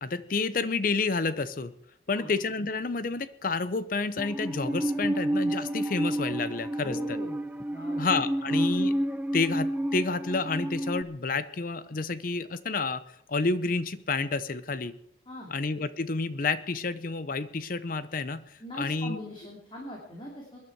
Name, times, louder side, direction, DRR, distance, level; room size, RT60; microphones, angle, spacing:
voice 1, 0.0-1.7 2.1-7.2 8.0-8.9 9.3-13.0 13.3-14.9 15.5-19.2, left 4 dB, 45° left, 14 dB, 0.6 m, -30 dB
Musical instrument, 4.2-11.0, right 1 dB, 10° right, 0.5 m, -30 dB
voice 2, 6.8-7.4 7.7-8.0 8.5-8.7 15.3-15.5 18.6-20.6, equal, 25° left, -1 dB, 2.7 m, -41 dB
21.5 x 11.5 x 4.6 m, 0.72 s
head